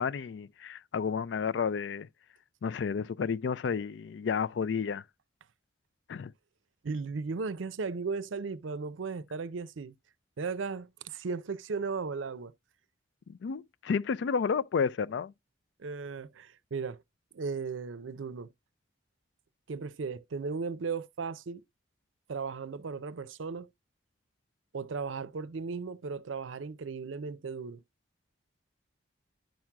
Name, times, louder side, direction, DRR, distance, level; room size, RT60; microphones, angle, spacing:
voice 1, 0.0-2.1 2.6-5.0 6.1-6.3 13.3-15.3, left 6 dB, 65° left, 0.3 m, -31 dB
voice 2, 6.8-9.9 10.4-12.5 15.8-17.0 17.3-18.5 19.7-21.6 22.3-23.7 24.7-27.8, right 4 dB, 85° right, 0.5 m, -36 dB
10.5 x 5.9 x 2.2 m
head